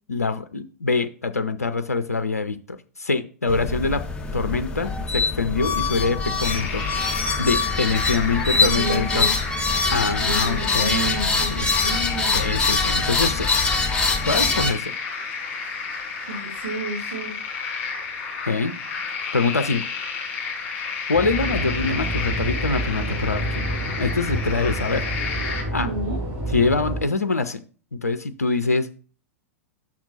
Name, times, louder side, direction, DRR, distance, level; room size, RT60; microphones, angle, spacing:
voice 1, 0.1-4.0 4.3-6.9 7.4-9.3 9.9-11.7 12.3-13.5 14.3-15.0 18.4-18.8 19.3-19.9 21.1-23.7 24.0-25.0 25.7-25.9 26.5-27.6 27.9-28.9, left 4 dB, 80° left, 10 dB, 0.5 m, -24 dB
sound 1, 3.5-14.7, left 4 dB, 10° left, 1.0 m, -24 dB
sound 2, 6.4-25.6, left 5 dB, 30° left, 3.5 m, -32 dB
voice 2, 8.5-9.3 9.9-12.4 16.3-17.3 25.8-26.2, right 2 dB, 55° right, -3 dB, 1.9 m, -30 dB
sound 3, 21.1-27.1, right 1 dB, 30° right, 3.8 m, -28 dB
6.0 x 5.9 x 4.1 m, 0.38 s
figure-of-eight pair, 100°, 8 cm